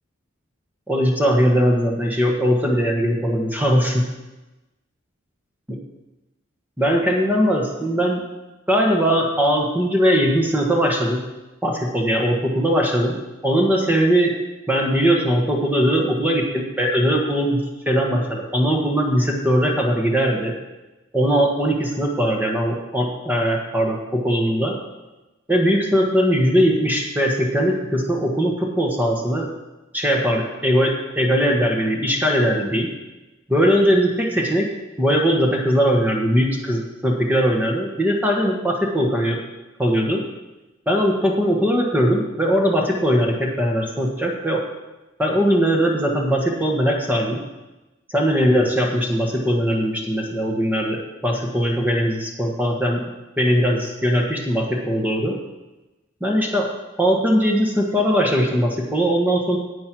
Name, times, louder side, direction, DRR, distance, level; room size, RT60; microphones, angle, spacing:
voice 1, 0.9-4.0 6.8-8.2 8.7-11.2 11.6-14.3 14.7-17.6 17.9-20.5 21.1-24.7 25.5-29.5 29.9-32.9 33.5-34.7 35.0-39.4 39.8-40.2 40.9-44.6 45.2-47.4 48.1-53.0 53.4-55.4 56.2-56.7 57.0-59.6, equal, 10° right, 1 dB, 1.4 m, -20 dB
10.5 x 8.5 x 6.1 m, 1.1 s
head